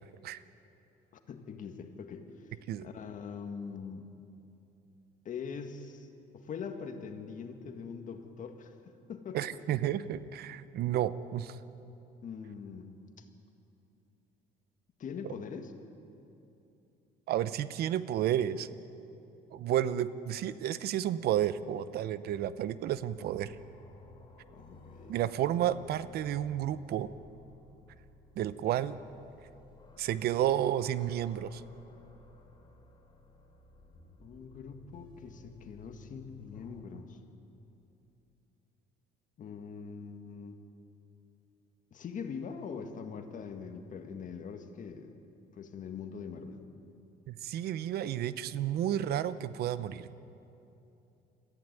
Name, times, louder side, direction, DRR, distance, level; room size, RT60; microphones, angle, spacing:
voice 1, 1.1-4.1 5.2-6.1 6.3-8.7 9.1-9.4 12.2-13.3 15.0-15.7 24.5-25.1 34.2-37.2 39.4-40.6 41.9-45.2 45.5-46.6, left 6 dB, 50° left, 6 dB, 1.8 m, -43 dB
voice 2, 9.3-11.6 17.3-18.7 19.5-23.6 25.1-27.1 28.4-29.0 30.0-31.6 47.3-50.1, right 11 dB, 70° right, 15 dB, 0.8 m, -31 dB
sound 1, 22.9-36.8, left 2 dB, 30° left, 3.1 m, -57 dB
22.0 x 14.5 x 9.2 m, 2.8 s
cardioid pair, 110°, 17 cm